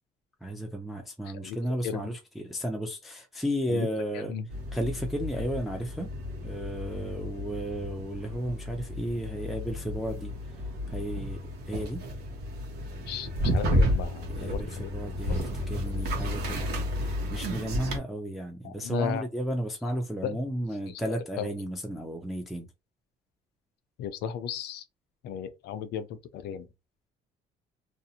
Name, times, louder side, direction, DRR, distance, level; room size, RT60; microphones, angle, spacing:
voice 1, 0.4-4.3 4.7-6.1 6.4-10.6 10.9-11.4 11.7-12.0 14.3-22.7, equal, ahead, 0.4 m, -33 dB
voice 2, 1.3-1.6 1.8-2.1 3.7-3.9 4.1-4.5 13.1-14.9 15.3-15.4 15.9-16.0 18.6-19.2 19.8-19.9 20.2-20.4 20.9-21.5 24.0-24.8 25.2-26.7, left 8 dB, 75° left, 0.5 m, -35 dB
sound 1, 4.5-18.0, equal, 70° right, 0.8 m, -32 dB
2.5 x 2.0 x 2.7 m
cardioid pair, 110°, 17 cm